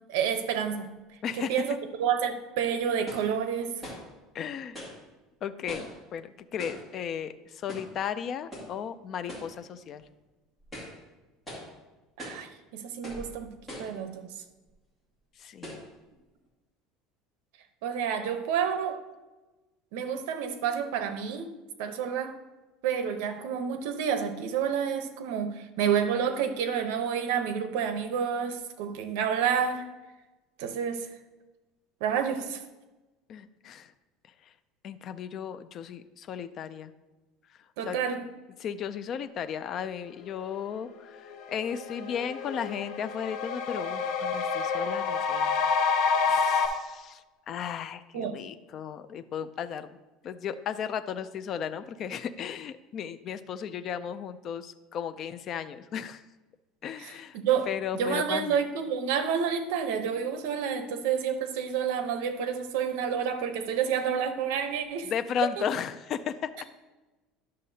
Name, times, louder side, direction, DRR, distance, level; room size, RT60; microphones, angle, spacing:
voice 1, 0.1-0.9 1.4-3.8 12.2-14.3 17.8-19.1 19.9-21.5 21.8-22.4 22.8-29.9 30.6-31.1 32.0-32.6 37.8-38.2 48.1-48.4 57.0-57.7 57.9-65.1 65.6-65.7, right 7 dB, 75° right, 9 dB, 0.8 m, -29 dB
voice 2, 1.2-1.6 4.3-4.8 5.4-10.0 15.4-15.8 33.3-33.9 34.5-34.6 34.8-36.9 37.9-38.0 38.6-45.9 46.2-49.9 50.2-56.2 56.8-57.4 57.7-58.6 65.0-66.6, left 8 dB, 30° left, 11 dB, 0.3 m, -35 dB
sound 1, 2.0-2.1 3.1-3.3 3.8-4.1 4.7-5.0 5.7-6.0 6.6-6.9 7.7-8.0 8.5-8.8 9.3-9.6 10.0-10.1 10.6-11.0 11.5-11.7 12.2-12.5 13.0-13.3 13.7-14.0 14.7-14.8 15.6-15.9, equal, 10° left, 2.1 m, -41 dB
sound 2, 40.9-41.0 41.3-46.7, left 5 dB, 55° left, 0.7 m, -28 dB
10.5 x 6.5 x 2.7 m, 1.1 s
cardioid pair, 175°, 0 cm